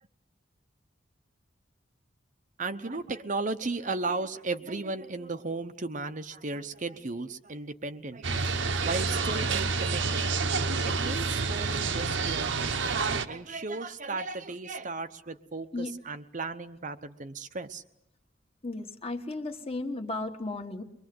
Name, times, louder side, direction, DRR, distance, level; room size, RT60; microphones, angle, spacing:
voice 1, 2.6-8.5 8.8-10.3 10.9-17.8, right 3 dB, 40° right, 9 dB, 0.9 m, -35 dB
sound 1, 8.2-13.3, right 4 dB, 70° right, 1.2 m, -28 dB
voice 2, 18.6-20.8, left 2 dB, 30° left, 5 dB, 1.7 m, -34 dB
23.5 x 23.0 x 7.9 m, 0.79 s
head